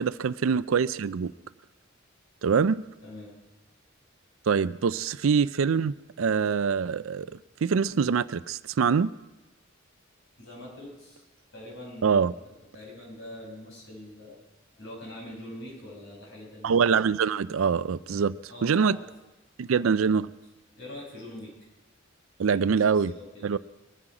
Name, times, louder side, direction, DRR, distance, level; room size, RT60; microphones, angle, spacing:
voice 1, 0.0-1.3 2.4-2.8 4.5-7.3 7.6-9.1 12.0-12.3 16.6-18.4 18.6-19.0 19.6-20.3 22.4-23.1 23.4-23.6, right 6 dB, 75° right, 0.4 m, -24 dB
voice 2, 3.0-3.4 10.4-11.2 11.5-14.4 14.7-16.7 18.5-19.1 19.7-20.2 20.7-21.5 22.5-22.7 22.9-23.5, left 1 dB, 65° left, 6.4 m, -44 dB
22.5 x 9.9 x 4.9 m
head